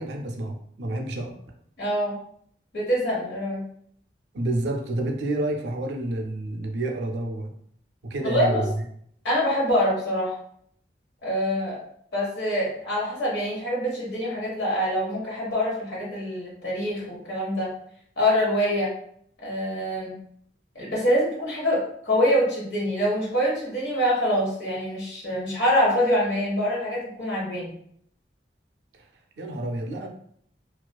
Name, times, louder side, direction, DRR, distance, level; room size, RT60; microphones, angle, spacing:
voice 1, 0.0-1.3 4.3-7.5 8.0-8.7 29.4-30.1, right 1 dB, 80° right, 3 dB, 0.4 m, -29 dB
voice 2, 1.8-2.2 2.7-3.6 8.2-8.6 9.2-10.4 11.2-11.8 12.1-17.7 18.2-18.9 19.4-20.1 20.7-27.7, equal, 90° left, -5 dB, 1.0 m, -25 dB
2.4 x 2.4 x 2.2 m, 0.65 s
head